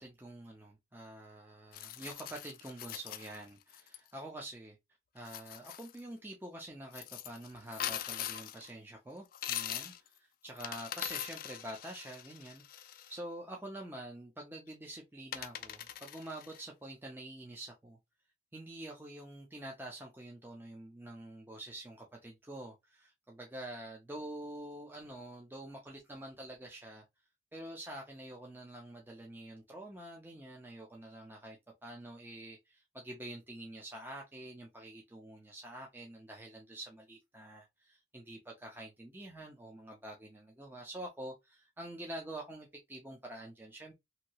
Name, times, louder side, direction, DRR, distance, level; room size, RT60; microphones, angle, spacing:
voice 1, 0.0-4.8 5.1-12.6 13.1-18.0 18.5-27.0 27.5-43.9, right 1 dB, 10° right, 0.5 m, -47 dB
sound 1, 1.7-4.0 5.2-6.0 6.9-8.7 9.3-10.1 10.5-13.2 14.7-14.8 15.3-16.6, left 11 dB, 50° left, 0.3 m, -42 dB
2.8 x 2.7 x 2.8 m
head